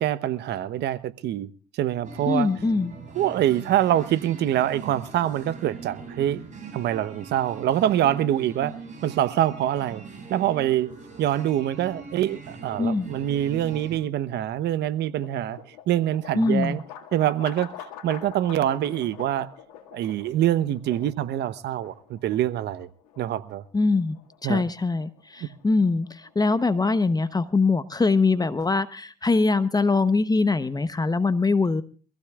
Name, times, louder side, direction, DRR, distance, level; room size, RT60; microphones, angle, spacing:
voice 1, 0.0-1.5 1.7-2.5 3.1-6.4 6.7-8.7 9.0-10.0 10.3-10.9 11.2-15.6 15.9-16.8 17.1-17.7 18.0-19.5 19.9-22.9 23.2-23.6 24.4-24.6, right 12 dB, 65° right, 0.9 m, -25 dB
sound 1, 2.0-14.0, right 4 dB, 40° right, 7.6 m, -41 dB
voice 2, 2.3-2.9 12.8-13.1 16.3-16.8 23.7-24.2 24.4-31.8, left 3 dB, 20° left, 0.9 m, -23 dB
sound 2, 14.1-28.0, left 9 dB, 90° left, 2.0 m, -46 dB
24.5 x 15.5 x 2.4 m
hypercardioid pair, 60°, 19 cm